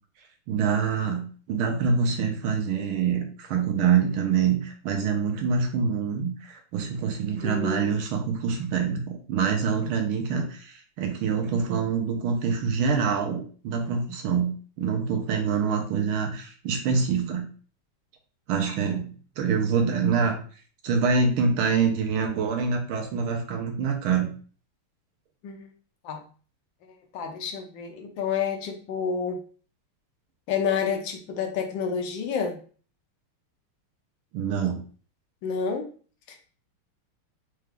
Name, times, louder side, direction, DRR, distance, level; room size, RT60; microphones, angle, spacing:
voice 1, 0.5-17.5 18.5-19.1 19.4-20.4 20.8-24.3 34.3-34.8, right 6 dB, 75° right, 3 dB, 1.5 m, -25 dB
voice 2, 7.4-7.9 25.4-25.7 26.0-26.2 26.8-29.4 30.5-32.6 35.4-35.9 36.3-36.5, left 6 dB, 70° left, 4 dB, 1.3 m, -29 dB
4.5 x 2.4 x 3.3 m, 0.41 s
omnidirectional pair, 2.4 m